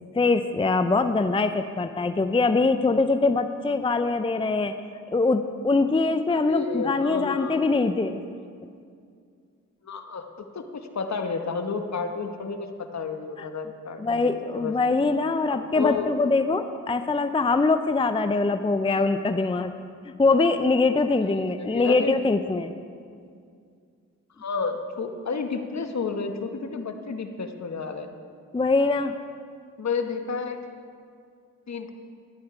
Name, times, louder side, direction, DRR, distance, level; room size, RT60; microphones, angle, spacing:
voice 1, 0.1-4.7 5.1-8.2 13.4-13.5 14.0-19.7 20.0-22.7 28.5-29.2, left 3 dB, 15° left, 9 dB, 0.5 m, -23 dB
voice 2, 6.3-7.6 9.8-10.3 10.5-14.7 15.7-16.1 21.2-21.3 21.6-22.4 24.4-28.1 29.8-30.6 31.7-31.9, left 5 dB, 55° left, 6 dB, 1.2 m, -31 dB
11.5 x 10.5 x 4.8 m, 2.3 s
supercardioid pair, 45°, 33 cm